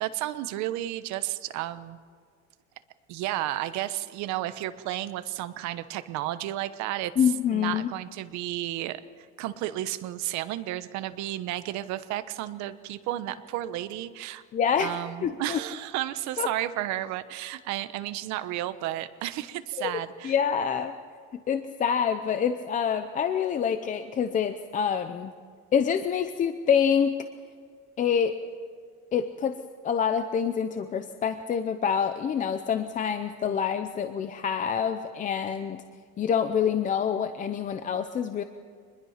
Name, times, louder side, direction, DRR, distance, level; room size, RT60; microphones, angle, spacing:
voice 1, 0.0-2.0 3.1-7.1 7.5-9.0 9.4-14.4 14.8-20.3, right 14 dB, 55° right, 12 dB, 1.1 m, -32 dB
voice 2, 7.2-7.9 14.5-15.0 15.2-15.6 16.4-16.5 19.8-20.0 20.2-20.9 21.5-25.3 25.7-27.1 28.0-28.4 29.1-29.6 29.8-35.8 36.2-38.4, left 7 dB, 25° left, 9 dB, 0.6 m, -26 dB
25.5 x 21.0 x 5.8 m, 2.1 s
cardioid pair, 175°, 33 cm